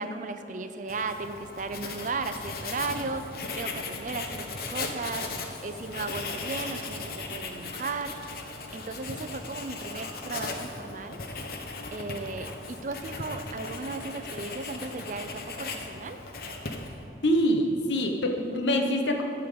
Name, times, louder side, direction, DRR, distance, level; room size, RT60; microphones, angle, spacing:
voice 1, 0.0-8.1 8.7-11.2 11.9-16.2, right 3 dB, 45° right, 9 dB, 0.5 m, -36 dB
Writing, 0.9-17.1, left 3 dB, 55° left, 0.9 m, -37 dB
voice 2, 17.2-19.2, equal, 75° left, 3 dB, 1.0 m, -25 dB
11.0 x 5.7 x 6.9 m, 2.9 s
head